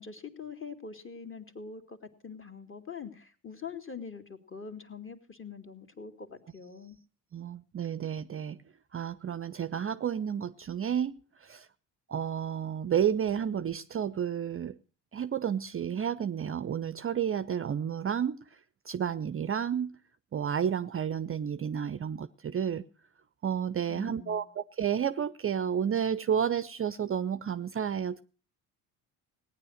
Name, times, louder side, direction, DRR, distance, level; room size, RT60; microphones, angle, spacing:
voice 1, 0.0-2.0 2.2-7.0 23.9-24.5, left 5 dB, 25° left, 7 dB, 2.5 m, -44 dB
voice 2, 7.3-8.6 8.9-11.7 12.1-14.8 15.1-18.4 18.9-19.9 20.3-22.8 23.4-28.2, right 8 dB, 30° right, 14 dB, 0.6 m, -31 dB
18.0 x 9.9 x 6.5 m, 0.40 s
hypercardioid pair, 65°, 47 cm